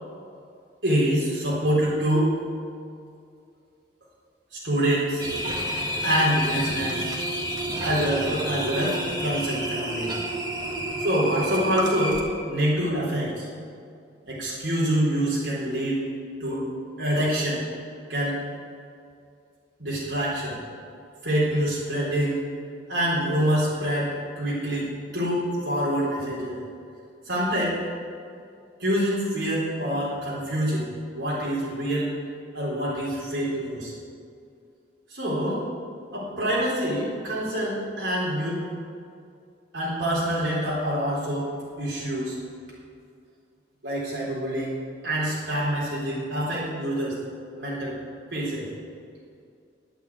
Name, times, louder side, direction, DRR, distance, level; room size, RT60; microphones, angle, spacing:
voice 1, 0.8-2.4 4.5-5.3 6.0-7.1 7.6-10.1 11.0-13.5 14.3-16.1 16.4-16.6 17.0-17.6 18.1-18.4 19.8-20.6 21.2-22.4 22.9-26.6 27.3-27.8 28.8-30.9 31.1-32.1 32.5-33.9 35.1-35.6 36.1-38.6 39.7-41.5 41.8-42.4 43.8-44.8 45.0-47.2 47.5-48.0 48.3-48.7, equal, 90° right, -7 dB, 3.8 m, -26 dB
sound 1, 5.2-12.2, right 1 dB, 25° right, 1.6 m, -29 dB
10.5 x 9.0 x 8.5 m, 2.4 s
head